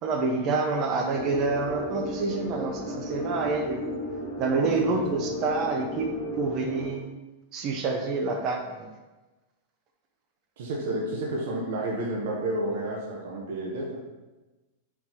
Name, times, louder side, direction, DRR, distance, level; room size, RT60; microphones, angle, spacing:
voice 1, 0.0-3.8 4.4-6.1 6.4-7.0 7.5-8.9, right 3 dB, 30° right, 3 dB, 0.6 m, -27 dB
sound 1, 1.1-6.9, equal, 30° left, 1.1 m, -34 dB
voice 2, 4.6-5.0 10.6-14.0, right 1 dB, 60° right, -2 dB, 0.8 m, -31 dB
4.5 x 2.8 x 3.8 m, 1.1 s
supercardioid pair, 165°, 0 cm